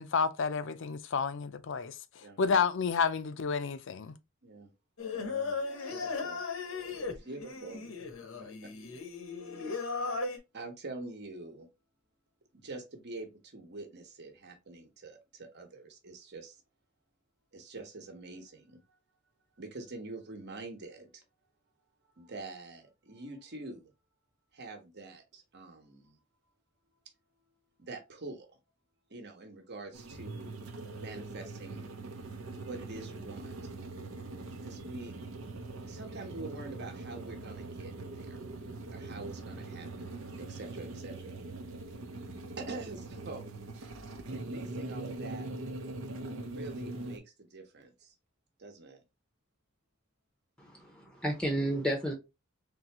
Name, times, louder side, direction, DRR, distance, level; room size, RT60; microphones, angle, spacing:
voice 1, 0.0-2.0 2.4-4.1, left 5 dB, 60° left, 0.5 m, -30 dB
Singing, 5.0-10.4, left 4 dB, 85° left, 0.9 m, -37 dB
voice 2, 5.2-6.4 7.0-7.8 8.6-8.7 9.5-11.7 12.5-16.6 17.5-18.8 19.6-21.2 22.2-23.9 24.5-26.2 27.8-28.6 29.1-30.5 30.9-31.9 32.6-33.5 34.6-35.2 35.9-38.4 38.9-41.4 42.6-43.5 44.2-45.5 46.4-48.1 48.6-49.0, right 2 dB, 55° right, 1.0 m, -45 dB
sound 1, 29.9-47.2, right 2 dB, 75° right, 0.8 m, -42 dB
voice 3, 50.6-52.1, right 1 dB, 5° left, 0.7 m, -32 dB
3.8 x 3.4 x 2.9 m
head